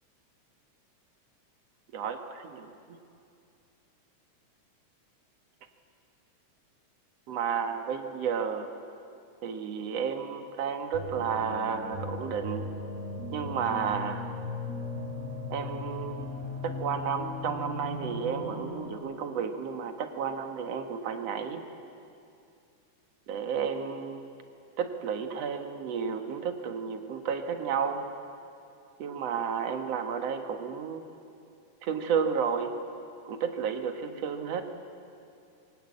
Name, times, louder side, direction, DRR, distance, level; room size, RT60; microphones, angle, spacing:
voice 1, 1.9-3.0 7.3-8.7 9.4-12.7 13.3-14.3 15.5-16.3 16.6-21.6 23.3-24.3 24.8-28.1 29.0-31.0 31.8-32.8 33.2-34.6, right 6 dB, 60° right, 5 dB, 2.6 m, -32 dB
sound 1, 10.9-18.9, left 2 dB, 25° right, 3.2 m, -37 dB
26.5 x 23.0 x 8.6 m, 2.6 s
omnidirectional pair, 3.5 m